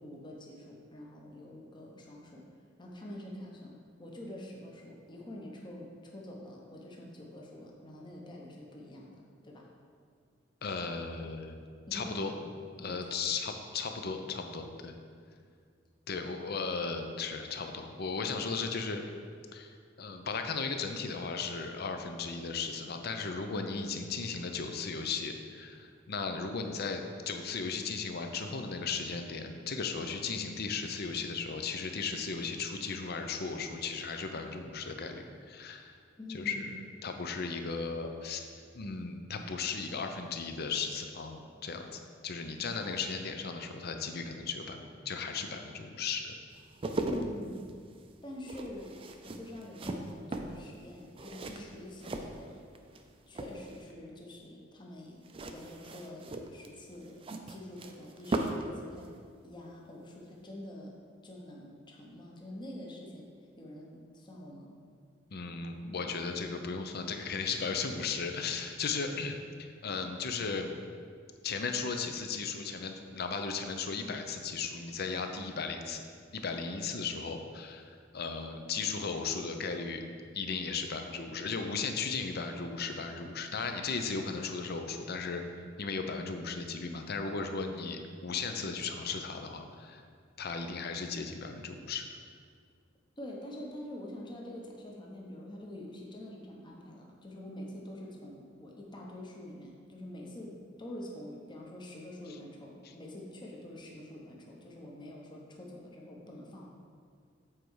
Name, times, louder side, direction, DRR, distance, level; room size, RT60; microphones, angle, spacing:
voice 1, 0.0-2.4 2.8-9.7 11.9-12.5 12.8-13.3 36.2-36.7 42.6-42.8 47.1-47.7 48.2-49.0 49.2-52.6 53.3-55.2 55.5-59.1 59.4-60.9 61.2-63.3 63.6-64.7 93.2-106.7, left 1 dB, 25° left, -1 dB, 0.9 m, -46 dB
voice 2, 10.6-11.6 11.9-12.3 12.8-14.9 16.1-19.0 19.5-36.0 36.3-36.7 37.0-38.4 38.7-46.4 65.3-70.7 71.4-76.0 76.3-80.0 80.3-85.4 85.8-90.0 90.4-92.1, left 4 dB, 55° left, 6 dB, 0.6 m, -36 dB
sound 1, 46.5-53.0 53.3-53.9 55.2-58.7 59.0-59.2, right 2 dB, 30° right, 0.4 m, -38 dB
7.6 x 4.5 x 4.8 m, 2.1 s
head